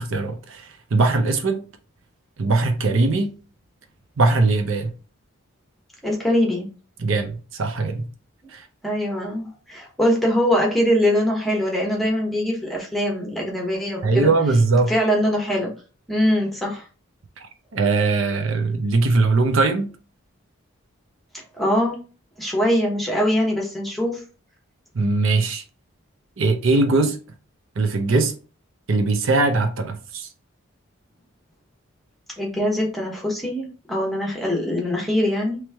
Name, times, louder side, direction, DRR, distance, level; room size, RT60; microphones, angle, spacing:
voice 1, 0.0-1.6 2.4-3.3 4.2-4.9 7.0-8.1 8.5-8.6 14.0-14.9 17.7-19.9 24.9-25.6 26.4-27.2 27.8-28.3 28.9-30.3, right 3 dB, 65° right, 0.6 m, -20 dB
voice 2, 6.0-6.7 8.8-14.3 14.9-15.7 16.1-16.8 21.6-22.0 22.4-24.2 32.4-35.6, equal, ahead, 0.9 m, -22 dB
3.2 x 3.1 x 3.4 m
head